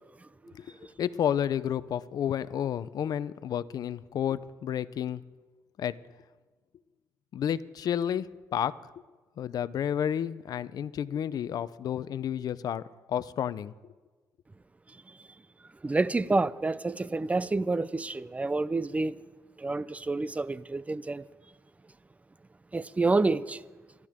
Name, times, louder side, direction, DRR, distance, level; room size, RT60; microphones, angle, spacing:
voice 1, 1.0-5.2 5.8-6.0 7.3-8.8 9.4-13.7, left 9 dB, 65° left, 0.6 m, -31 dB
voice 2, 15.8-19.2 19.6-21.2 22.7-23.6, right 3 dB, 20° right, 0.6 m, -28 dB
27.0 x 12.0 x 3.7 m
supercardioid pair, 65°, 7 cm